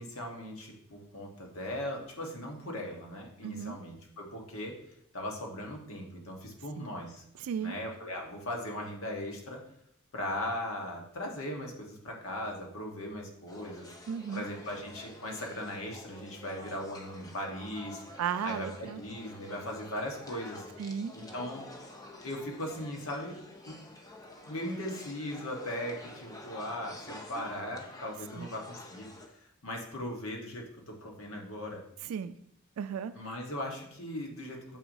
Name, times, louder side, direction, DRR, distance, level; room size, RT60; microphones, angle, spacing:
voice 1, 0.0-4.8 5.1-7.2 7.6-9.6 10.1-13.9 14.3-18.0 18.4-20.6 21.1-21.6 22.2-23.4 23.7-23.8 24.4-29.1 29.6-31.8 33.1-34.8, left 1 dB, 75° left, 0 dB, 1.3 m, -38 dB
voice 2, 3.4-3.8 6.8-6.9 7.4-7.8 14.1-14.5 18.2-19.0 20.8-21.1 28.4-28.5 32.0-32.3 32.8-33.1, right 7 dB, 90° right, 12 dB, 0.3 m, -35 dB
sound 1, 13.5-29.3, left 1 dB, 15° left, 0.7 m, -49 dB
7.0 x 5.8 x 2.7 m, 0.72 s
head